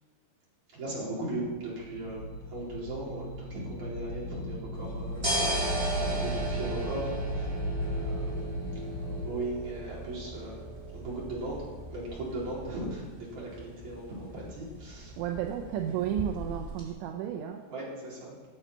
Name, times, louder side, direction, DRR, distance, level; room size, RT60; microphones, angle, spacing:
voice 1, 0.7-5.3 5.9-7.5 7.9-8.6 8.9-10.6 10.9-15.1 15.8-16.1 17.7-18.3, right 1 dB, 40° right, -6 dB, 5.1 m, -38 dB
sound 1, 1.5-9.3, equal, 65° left, 1.8 m, -35 dB
sound 2, 4.7-16.9, right 1 dB, 15° right, 3.0 m, -37 dB
voice 2, 15.2-17.6, right 10 dB, 80° right, 4 dB, 2.8 m, -32 dB
20.0 x 7.4 x 5.6 m, 1.3 s
omnidirectional pair, 5.7 m